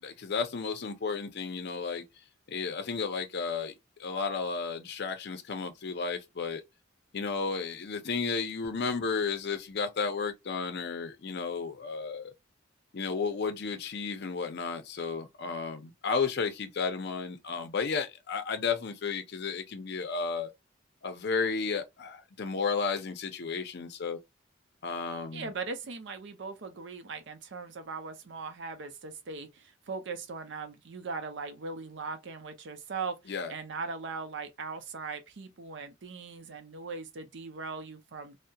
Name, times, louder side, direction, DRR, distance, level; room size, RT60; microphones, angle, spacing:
voice 1, 0.0-2.0 2.5-3.7 4.0-6.6 7.1-12.3 12.9-20.5 21.0-24.2 24.8-25.5 33.3-33.5, left 5 dB, 55° left, 0.5 m, -33 dB
voice 2, 25.3-38.4, right 4 dB, 65° right, 0.5 m, -39 dB
2.7 x 2.1 x 2.2 m
head